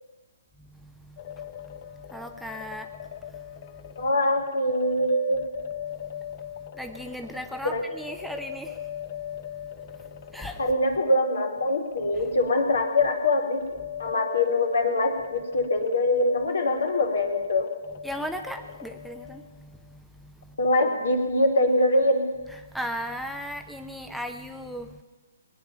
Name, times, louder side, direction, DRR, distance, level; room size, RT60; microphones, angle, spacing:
sound 1, 1.2-19.6, left 10 dB, 45° left, 0.8 m, -39 dB
voice 1, 2.1-2.9 6.8-8.7 10.3-10.6 18.0-19.4 22.7-24.9, equal, ahead, 6 dB, 0.8 m, -35 dB
voice 2, 4.0-5.4 7.6-7.9 10.4-17.7 20.6-22.3, left 1 dB, 75° left, 3 dB, 3.2 m, -24 dB
20.5 x 9.7 x 7.0 m, 1.2 s
figure-of-eight pair, 135°, 0 cm